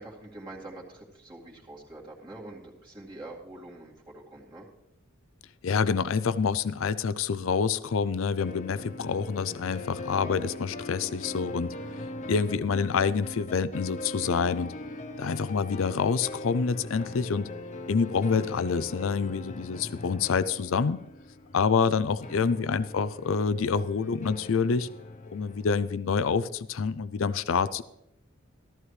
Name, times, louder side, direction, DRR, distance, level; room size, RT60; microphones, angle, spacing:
voice 1, 0.0-4.7 22.3-22.6, right 2 dB, 25° right, -4 dB, 2.2 m, -45 dB
voice 2, 5.6-11.7 12.3-14.7 15.2-17.5 17.9-21.0 21.5-24.9 25.3-27.8, left 5 dB, 75° left, 15 dB, 0.5 m, -27 dB
sound 1, 8.4-25.9, left 2 dB, 35° left, 0.7 m, -41 dB
14.0 x 14.0 x 3.2 m, 0.85 s
head